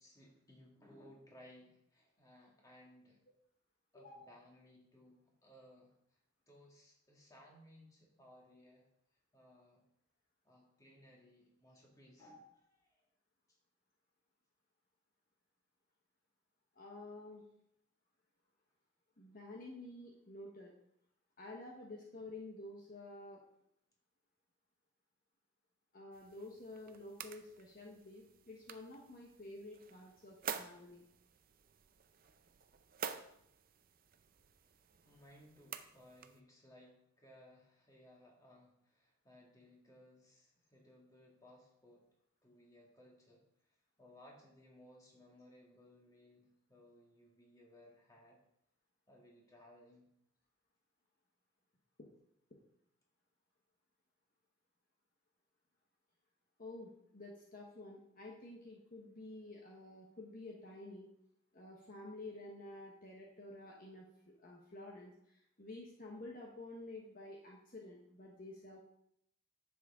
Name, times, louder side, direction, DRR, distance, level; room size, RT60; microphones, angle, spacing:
voice 1, 0.0-3.2 3.9-6.2 6.5-8.8 9.3-9.8 10.4-12.5 12.8-13.0 13.5-13.6 35.0-42.1 42.4-43.4 44.0-48.4 49.1-50.1, left 1 dB, 15° left, -2 dB, 2.1 m, -62 dB
voice 2, 3.9-4.3 12.2-12.5 16.7-17.4 19.2-20.7 21.4-23.4 25.9-31.1 52.0-52.1 56.6-61.1 61.5-68.8, left 2 dB, 40° left, -1 dB, 1.2 m, -51 dB
sound 1, 26.1-36.4, right 7 dB, 40° right, 0.5 m, -50 dB
10.0 x 7.3 x 3.7 m, 0.74 s
head